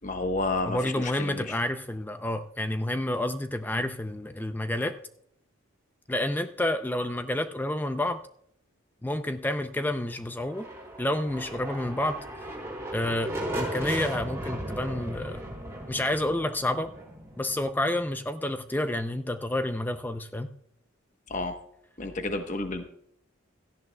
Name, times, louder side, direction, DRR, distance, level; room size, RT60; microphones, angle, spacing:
voice 1, 0.0-1.6 21.3-21.6 22.0-22.8, left 2 dB, 35° left, 6 dB, 1.0 m, -31 dB
voice 2, 0.6-5.0 6.1-8.2 9.0-10.7 11.0-12.2 12.9-15.4 15.9-16.9 17.4-20.5, left 1 dB, 10° left, 9 dB, 0.4 m, -29 dB
sound 1, 10.4-18.1, right 1 dB, 15° right, 3.5 m, -36 dB
17.0 x 13.5 x 2.2 m, 0.70 s
head